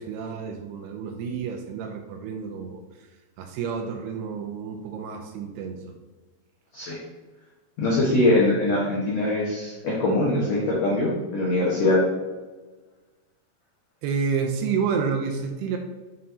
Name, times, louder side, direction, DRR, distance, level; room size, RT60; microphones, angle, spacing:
voice 1, 0.0-2.8 3.4-6.0 14.0-15.8, right 6 dB, 85° right, 3 dB, 2.5 m, -29 dB
voice 2, 7.8-12.0, left 2 dB, 90° left, -5 dB, 1.5 m, -22 dB
7.5 x 5.6 x 2.8 m, 1.3 s
omnidirectional pair, 5.0 m